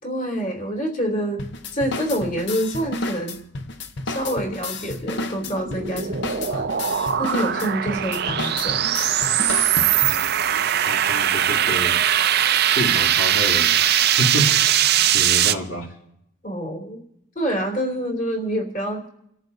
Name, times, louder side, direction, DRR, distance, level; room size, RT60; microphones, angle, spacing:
voice 1, 0.0-1.4 1.7-3.4 4.0-8.9 16.4-17.0 17.3-19.1, equal, 40° left, 0 dB, 3.1 m, -27 dB
sound 1, 1.4-10.3, left 2 dB, 55° left, 0.8 m, -32 dB
sound 2, 5.0-15.5, right 10 dB, 50° right, 0.5 m, -21 dB
voice 2, 10.9-12.0 12.7-14.5 15.1-15.9, equal, 75° left, -2 dB, 2.9 m, -28 dB
29.5 x 14.0 x 2.7 m, 0.77 s
head